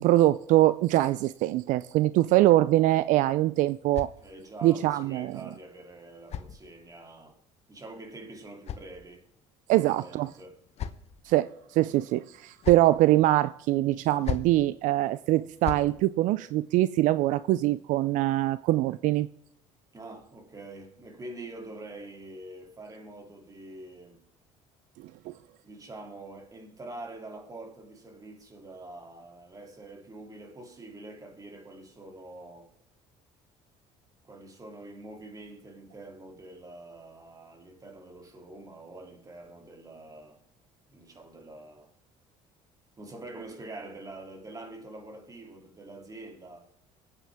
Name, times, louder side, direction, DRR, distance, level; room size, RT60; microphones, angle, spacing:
voice 1, 0.0-4.1 4.6-5.4 9.7-10.3 11.2-19.3 25.0-25.3, right 16 dB, 70° right, 0.4 m, -23 dB
sound 1, 3.0-4.7 5.7-7.1 8.1-9.5 10.3-11.3 12.3-13.0 14.0-14.6 15.4-15.9, left 8 dB, 50° left, 1.0 m, -40 dB
voice 2, 4.2-7.4 7.7-9.2 9.7-10.6 19.9-24.2 25.6-32.7 34.2-40.4 40.9-41.9 43.0-46.7, right 2 dB, 25° right, 2.7 m, -45 dB
23.0 x 8.8 x 3.5 m
supercardioid pair, 95°, 14 cm